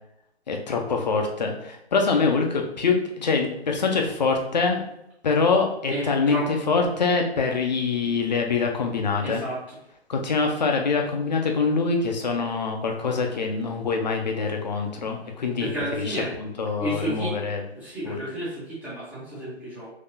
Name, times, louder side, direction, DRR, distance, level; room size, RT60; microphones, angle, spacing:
voice 1, 0.5-4.8 5.2-9.4 10.1-15.7 16.0-17.6 18.0-18.2, left 4 dB, 40° left, 2 dB, 0.6 m, -24 dB
voice 2, 5.9-6.5 9.2-9.7 15.6-16.3 16.8-17.3 17.7-19.9, right 1 dB, 5° right, -10 dB, 0.9 m, -31 dB
4.0 x 2.8 x 2.7 m, 0.82 s
figure-of-eight pair, 140°, 33 cm